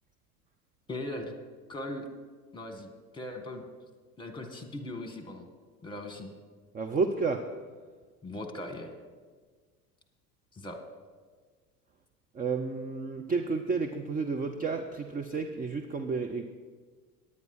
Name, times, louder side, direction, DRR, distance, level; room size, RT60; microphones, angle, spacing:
voice 1, 0.9-1.4 1.7-2.1 2.5-3.6 4.2-5.5 5.8-6.3 8.2-8.9 10.5-10.8, left 1 dB, 10° left, 5 dB, 1.6 m, -39 dB
voice 2, 6.7-7.6 12.3-16.5, right 4 dB, 20° right, 7 dB, 0.6 m, -31 dB
9.6 x 9.4 x 5.6 m, 1.5 s
hypercardioid pair, 80°, 46 cm